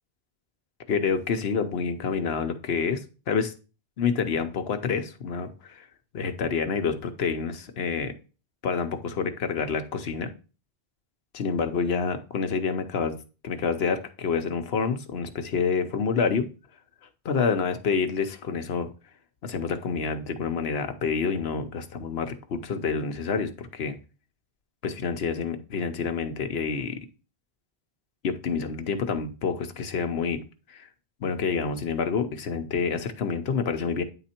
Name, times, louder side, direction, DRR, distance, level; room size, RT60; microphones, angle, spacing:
voice 1, 0.9-3.5 4.0-5.8 6.1-8.1 8.6-10.3 11.3-13.2 13.4-16.5 17.2-18.9 19.4-24.0 24.8-27.0 28.2-30.4 30.7-30.9 31.2-34.0, left 5 dB, 70° left, 8 dB, 1.1 m, -28 dB
9.2 x 4.0 x 4.3 m, 0.34 s
omnidirectional pair, 1.1 m